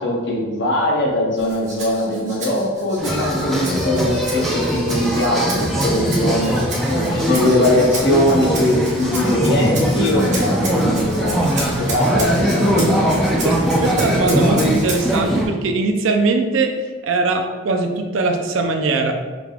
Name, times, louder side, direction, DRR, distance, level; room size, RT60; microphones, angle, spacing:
voice 1, 0.0-11.3 11.8-13.3, left 1 dB, 60° left, -2 dB, 0.9 m, -20 dB
Rattle (instrument), 1.4-15.2, right 2 dB, 35° right, 0.9 m, -33 dB
sound 1, 3.0-15.4, equal, ahead, 0.4 m, -20 dB
voice 2, 13.4-16.8 17.0-19.1, right 3 dB, 70° right, 5 dB, 0.5 m, -21 dB
5.0 x 3.4 x 2.4 m, 1.3 s
head